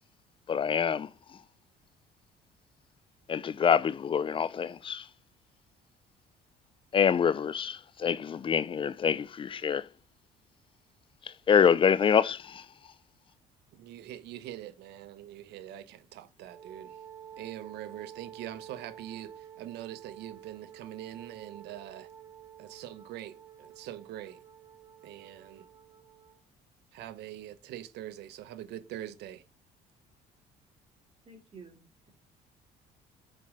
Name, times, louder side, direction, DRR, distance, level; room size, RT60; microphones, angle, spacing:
voice 1, 0.5-1.1 3.3-5.0 6.9-9.9 11.5-12.6, left 7 dB, 30° left, 0.4 m, -26 dB
voice 2, 13.7-17.0 17.4-22.1 22.6-24.4 25.0-25.7 26.9-29.4, right 12 dB, 80° right, 1.1 m, -43 dB
Wind instrument woodwind instrument, 16.4-26.4, right 9 dB, 15° right, 2.2 m, -50 dB
voice 3, 31.3-32.1, right 4 dB, 35° right, 2.6 m, -51 dB
6.6 x 4.9 x 5.4 m
cardioid pair, 110°, 17 cm